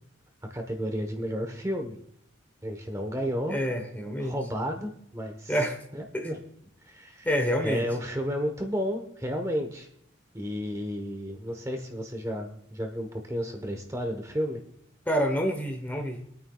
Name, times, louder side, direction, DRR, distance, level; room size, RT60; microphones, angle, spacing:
voice 1, 0.5-2.0 2.6-3.6 4.2-5.6 5.9-6.4 6.8-7.3 7.6-9.9 10.3-14.6, equal, 15° right, 4 dB, 1.1 m, -32 dB
voice 2, 3.5-4.4 5.5-5.8 6.1-6.3 7.2-7.8 15.1-16.2, equal, 10° left, 4 dB, 1.0 m, -27 dB
25.5 x 9.2 x 2.4 m, 0.72 s
head